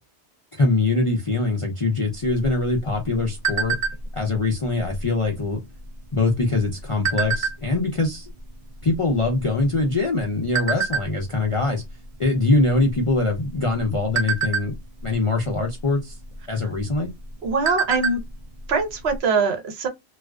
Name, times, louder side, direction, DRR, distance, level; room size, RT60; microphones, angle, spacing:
voice 1, 0.5-3.8 4.1-5.6 6.1-8.3 8.8-11.8 12.2-14.8 15.0-16.2 16.5-17.1, left 2 dB, 45° left, 0.4 m, -23 dB
sound 1, 2.3-4.3 4.7-5.0 5.3-5.6 6.3-7.9 8.5-8.6 8.8-10.1 10.5-11.0 11.6-11.8 12.1-12.3 12.8-13.3 13.7-15.2 16.2-16.3 16.8-16.9 17.2-18.3 18.6-18.7 19.1-19.2, right 5 dB, 45° right, 0.5 m, -26 dB
voice 2, 17.4-18.2 18.7-19.9, right 4 dB, 65° right, 0.9 m, -22 dB
2.4 x 2.3 x 2.2 m
omnidirectional pair, 1.2 m